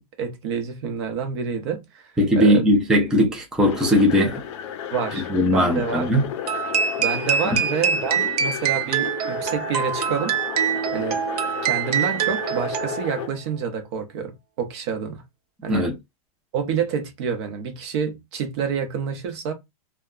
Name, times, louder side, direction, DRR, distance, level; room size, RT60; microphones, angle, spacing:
voice 1, 0.0-2.6 4.9-6.1 7.0-10.4 10.9-11.2 11.6-15.2 15.6-15.9 16.5-19.5, right 6 dB, 45° right, 0.8 m, -28 dB
voice 2, 2.2-4.4 5.3-6.2 7.5-7.6 15.7-16.0, equal, 5° right, 0.4 m, -19 dB
sound 1, 3.6-13.3, left 9 dB, 50° left, 0.5 m, -33 dB
sound 2, 6.5-13.3, right 8 dB, 80° right, 0.5 m, -25 dB
2.2 x 2.1 x 3.6 m
supercardioid pair, 160°, 19 cm